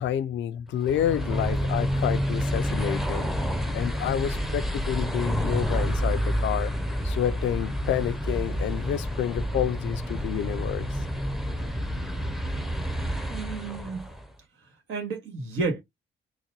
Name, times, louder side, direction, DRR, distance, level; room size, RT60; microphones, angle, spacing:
voice 1, 0.0-3.3 3.7-6.7 7.0-11.0, left 10 dB, 70° left, 0.4 m, -29 dB
sound 1, 0.8-14.3, equal, ahead, 0.6 m, -29 dB
voice 2, 13.3-14.1 14.9-15.8, right 4 dB, 80° right, 1.6 m, -31 dB
4.0 x 2.1 x 2.9 m
cardioid pair, 90°, 20 cm